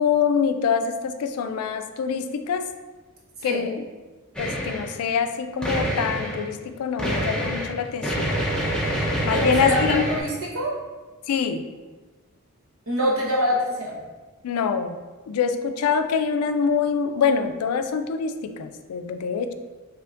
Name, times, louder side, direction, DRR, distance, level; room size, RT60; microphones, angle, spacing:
voice 1, 0.0-2.7 3.4-3.8 4.4-8.3 9.2-10.0 11.3-11.6 14.4-15.0 15.3-19.5, left 6 dB, 80° left, 8 dB, 0.3 m, -25 dB
sound 1, 4.3-5.0 5.6-6.5 7.0-10.2, equal, 5° left, 0.5 m, -26 dB
voice 2, 9.3-10.8 12.9-14.0, equal, 65° right, -4 dB, 1.1 m, -25 dB
5.7 x 2.9 x 2.5 m, 1.3 s
head